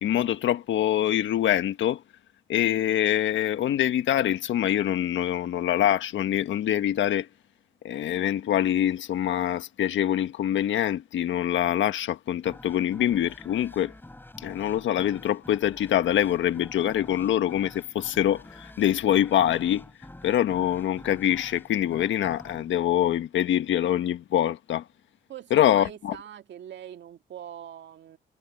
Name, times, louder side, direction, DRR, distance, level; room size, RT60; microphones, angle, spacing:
voice 1, 0.0-2.0 2.5-7.3 7.8-13.9 14.4-19.8 20.2-24.8 25.5-26.2, left 11 dB, 75° left, 1.5 m, -24 dB
sound 1, 12.4-23.9, left 1 dB, 10° left, 4.4 m, -48 dB
voice 2, 25.3-28.2, right 10 dB, 65° right, 2.1 m, -42 dB
cardioid pair, 90°, 20 cm